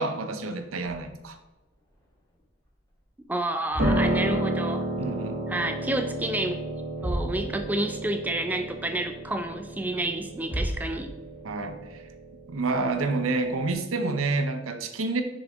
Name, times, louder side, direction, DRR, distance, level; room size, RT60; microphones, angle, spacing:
voice 1, 0.0-1.4 5.0-5.4 11.4-12.0 12.5-15.2, right 3 dB, 90° right, 7 dB, 0.7 m, -28 dB
sound 1, 0.8-2.4 2.7-3.0 3.5-5.3 5.6-6.3 6.6-6.7 6.9-7.9 8.3-8.4 9.0-9.1 10.1-10.2 10.5-11.5, equal, 15° left, 1.5 m, -35 dB
voice 2, 3.3-4.9 5.5-6.6 7.0-11.1 14.0-14.1, right 1 dB, 10° right, 6 dB, 0.3 m, -29 dB
Piano, 3.8-13.7, right 1 dB, 50° right, 1.2 m, -32 dB
6.1 x 5.3 x 3.5 m, 1.0 s
head